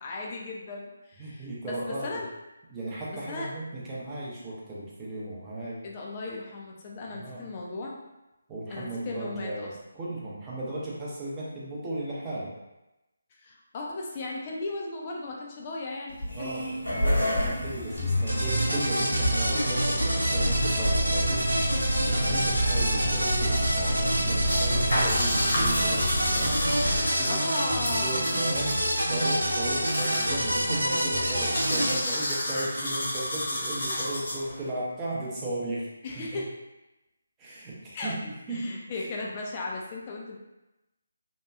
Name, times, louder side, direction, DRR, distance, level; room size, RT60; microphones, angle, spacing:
voice 1, 0.0-2.3 3.3-3.5 5.8-8.0 8.7-9.8 13.3-16.5 27.3-28.7 36.0-36.5 37.9-38.2 38.5-40.4, left 2 dB, 30° left, -2 dB, 0.5 m, -36 dB
voice 2, 1.2-2.2 2.7-5.8 7.1-7.5 8.5-12.5 16.3-16.6 16.9-35.9 36.2-36.4 37.4-38.8, right 1 dB, 15° right, -8 dB, 0.6 m, -36 dB
sound 1, 16.1-27.0, equal, 75° left, 0.9 m, -29 dB
sound 2, 18.3-32.0, right 1 dB, 80° right, 0.6 m, -27 dB
sound 3, 24.4-34.7, left 1 dB, 55° left, 1.0 m, -32 dB
2.9 x 2.2 x 2.3 m, 0.98 s
figure-of-eight pair, 150°, 0 cm